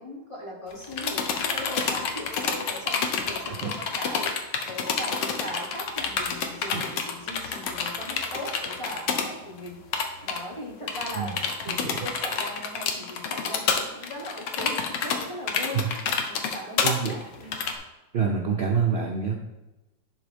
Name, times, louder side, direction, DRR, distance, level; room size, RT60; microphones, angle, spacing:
voice 1, 0.0-15.8 16.3-17.6, equal, 20° left, -2 dB, 1.0 m, -39 dB
sound 1, 0.7-9.3 9.6-9.7 9.9-10.4 10.9-17.7, left 5 dB, 75° left, 1.5 m, -28 dB
voice 2, 3.3-3.7 6.7-6.8 11.1-11.4 11.7-12.0 15.7-15.9 16.8-17.1 18.1-19.3, right 6 dB, 80° right, 0 dB, 0.5 m, -27 dB
11.0 x 3.6 x 5.2 m, 1.0 s
omnidirectional pair, 2.0 m